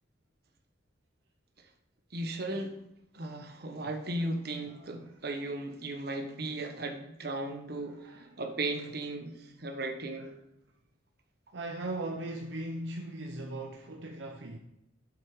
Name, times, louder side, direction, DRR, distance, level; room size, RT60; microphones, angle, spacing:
voice 1, 2.1-2.8 3.1-8.0 8.4-10.3, right 2 dB, 55° right, 1.2 m, -36 dB
voice 2, 4.7-5.1 7.9-8.4 10.2-10.3 11.5-14.6, right 2 dB, 75° right, 0.8 m, -39 dB
7.7 x 7.0 x 5.0 m
head